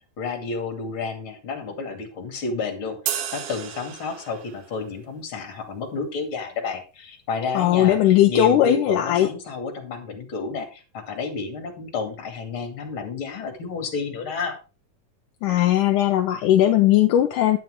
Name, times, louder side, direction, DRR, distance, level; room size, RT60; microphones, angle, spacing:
voice 1, 0.2-14.6, left 4 dB, 40° left, 4 dB, 3.0 m, -31 dB
sound 1, 3.1-4.7, right 9 dB, 70° right, 2.6 m, -32 dB
voice 2, 7.5-9.3 15.4-17.6, left 12 dB, 75° left, 6 dB, 2.1 m, -18 dB
10.5 x 9.4 x 3.7 m, 0.31 s
omnidirectional pair, 4.0 m